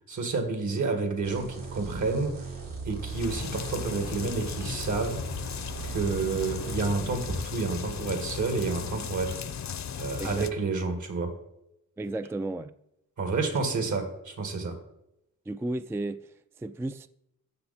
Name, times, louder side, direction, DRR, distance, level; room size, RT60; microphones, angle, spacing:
voice 1, 0.1-2.4 2.8-5.3 5.8-9.4 10.0-11.4 13.2-14.8, right 4 dB, 60° right, 2.1 m, -30 dB
sound 1, 1.2-6.9, right 5 dB, 80° right, 4.6 m, -39 dB
sound 2, 3.0-10.5, left 7 dB, 55° left, 0.7 m, -36 dB
voice 2, 10.2-10.5 12.0-12.8 15.5-17.1, right 2 dB, 10° right, 0.3 m, -34 dB
13.5 x 7.6 x 4.3 m
wide cardioid pair, 115°, 33 cm